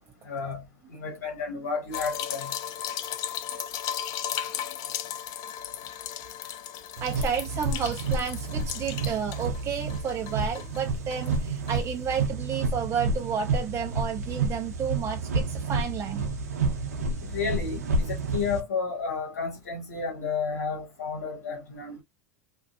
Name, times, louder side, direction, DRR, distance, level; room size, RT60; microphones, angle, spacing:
voice 1, 0.2-0.6 0.9-2.5 17.2-22.0, left 5 dB, 85° left, 0.9 m, -32 dB
sound 1, 1.9-9.6 9.9-11.4 11.7-11.8 12.1-12.2, left 10 dB, 50° left, 0.4 m, -36 dB
voice 2, 7.0-16.2, right 7 dB, 35° right, 0.4 m, -31 dB
sound 2, 7.0-18.6, right 3 dB, 85° right, 0.7 m, -30 dB
2.6 x 2.2 x 2.6 m
hypercardioid pair, 90°, 8 cm